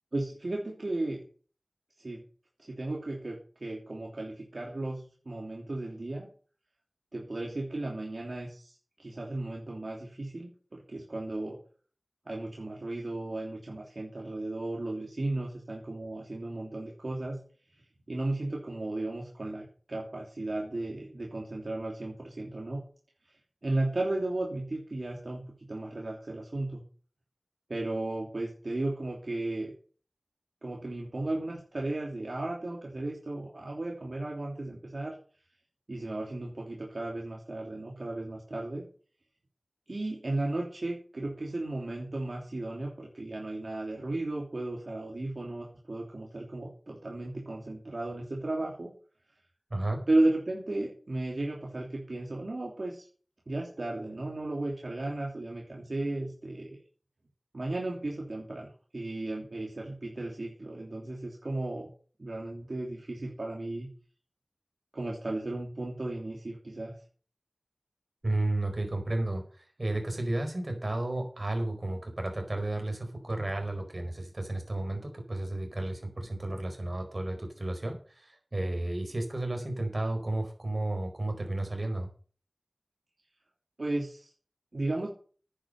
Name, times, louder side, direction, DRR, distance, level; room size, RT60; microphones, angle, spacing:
voice 1, 0.1-1.2 2.0-2.2 2.6-6.3 7.1-11.6 12.3-17.4 18.1-22.8 23.6-25.4 25.7-26.8 27.7-29.7 30.6-35.2 35.9-38.8 39.9-48.9 50.1-53.0 53.5-56.8 57.5-61.9 62.2-63.9 64.9-66.9 83.8-84.2 84.7-85.1, right 2 dB, 75° right, -2 dB, 3.1 m, -34 dB
voice 2, 49.7-50.0 68.2-82.1, right 1 dB, 55° right, 4 dB, 4.6 m, -32 dB
10.0 x 9.0 x 6.7 m, 0.41 s
wide cardioid pair, 40°, 0 cm